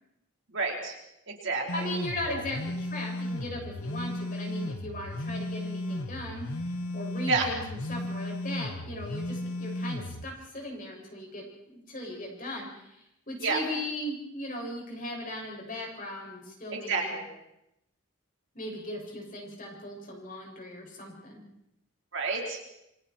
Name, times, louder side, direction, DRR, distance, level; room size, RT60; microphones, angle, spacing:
voice 1, 0.5-1.0 1.3-1.9 7.3-7.5 13.4-13.6 16.7-17.2 22.1-22.6, right 4 dB, 55° right, 0 dB, 4.7 m, -29 dB
sound 1, 1.7-10.2, left 1 dB, 85° left, 1.5 m, -35 dB
voice 2, 1.7-6.5 6.9-17.1 18.6-21.4, left 1 dB, 40° left, 0 dB, 6.8 m, -38 dB
28.5 x 23.0 x 4.6 m, 0.85 s
head